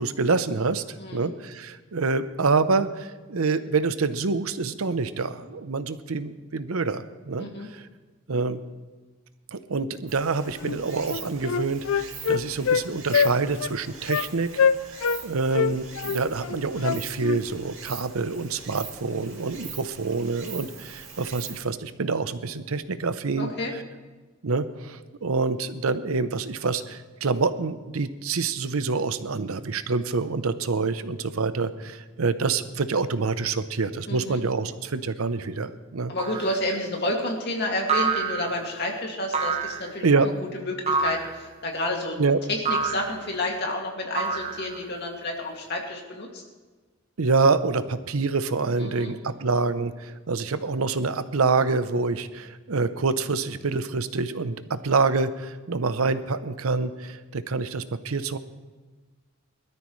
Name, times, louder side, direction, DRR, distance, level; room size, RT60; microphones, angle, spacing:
voice 1, 0.0-0.8 1.1-7.9 8.3-8.6 9.5-14.6 15.2-23.5 24.4-36.1 40.0-40.3 42.2-42.4 47.2-58.4, right 4 dB, 85° right, 12 dB, 0.7 m, -26 dB
voice 2, 1.0-1.3 7.4-7.7 23.4-23.7 34.1-34.4 36.1-42.2 42.5-46.4 48.8-49.1, left 1 dB, 50° left, 0 dB, 2.3 m, -30 dB
Stream, 10.1-21.6, right 6 dB, 70° right, 2.4 m, -43 dB
Wind instrument woodwind instrument, 10.6-10.8 11.1-12.8 13.1-13.3 13.6-13.7 14.1-14.3 14.6-15.2 15.5-17.4, left 6 dB, 80° left, 0.4 m, -24 dB
sound 1, 36.2-36.6 37.9-38.7 39.3-39.9 40.9-41.4 42.7-43.2 44.2-44.9, right 5 dB, 30° right, 0.9 m, -27 dB
21.0 x 13.0 x 3.2 m, 1.3 s
head